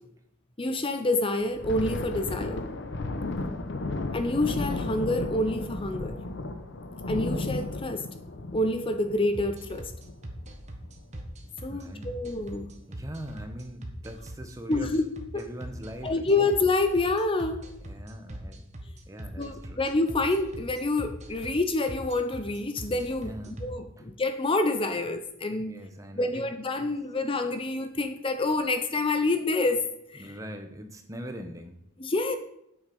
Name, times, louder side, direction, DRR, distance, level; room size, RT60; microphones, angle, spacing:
voice 1, 0.6-2.7 4.1-6.2 7.1-8.1 8.5-9.9 11.6-12.7 14.7-15.0 15.3-15.5 16.0-17.7 19.4-25.7 26.2-30.4 32.0-32.4, left 2 dB, 25° left, 8 dB, 0.7 m, -27 dB
Thunder, 1.4-10.5 10.8-11.0 11.4-11.7 12.3-12.8, left 2 dB, 60° left, 1.0 m, -34 dB
sound 1, 9.3-23.7, right 1 dB, 35° right, 1.5 m, -41 dB
voice 2, 11.7-12.1 12.9-14.9 15.3-16.5 17.8-18.6 19.1-19.8 23.2-23.7 24.0-24.1 25.6-26.5 26.8-26.9 30.2-31.8, equal, 15° right, 6 dB, 1.0 m, -41 dB
9.6 x 7.3 x 5.4 m, 0.78 s
head